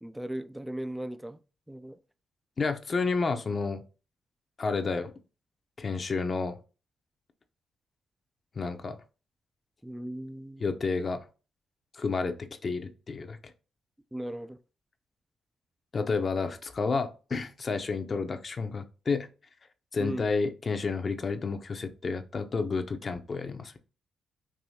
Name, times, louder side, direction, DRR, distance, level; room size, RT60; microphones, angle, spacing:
voice 1, 0.0-1.4 1.7-2.0 9.8-10.7 14.1-14.6 20.0-20.3, right 1 dB, 10° right, 0.3 m, -37 dB
voice 2, 2.6-3.8 4.6-5.1 5.8-6.6 8.6-9.0 10.6-11.3 11.9-13.4 15.9-19.3 19.9-23.7, left 4 dB, 40° left, 0.6 m, -30 dB
4.7 x 2.7 x 2.7 m
cardioid pair, 70°, 0 cm